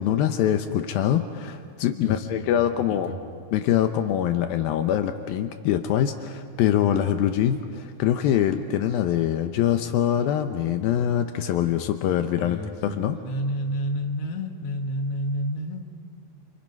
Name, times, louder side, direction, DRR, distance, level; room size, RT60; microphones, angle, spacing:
voice 1, 0.0-3.1 3.5-12.6 12.8-13.2, left 10 dB, 80° left, 7 dB, 2.6 m, -24 dB
voice 2, 2.0-3.2 12.4-15.9, equal, 50° left, 3 dB, 2.4 m, -30 dB
28.5 x 27.5 x 5.4 m, 2.2 s
omnidirectional pair, 4.3 m